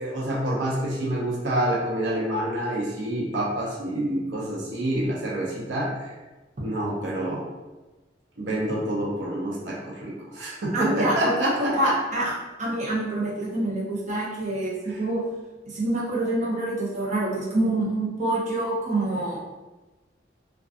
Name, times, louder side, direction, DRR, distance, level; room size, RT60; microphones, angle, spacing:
voice 1, 0.0-6.1 6.6-7.4 8.4-12.0 14.9-15.0, right 1 dB, 85° right, -4 dB, 0.6 m, -27 dB
voice 2, 10.7-12.3 12.6-15.2 15.7-19.4, right 1 dB, 40° right, -5 dB, 0.6 m, -26 dB
2.5 x 2.3 x 2.4 m, 1.2 s
head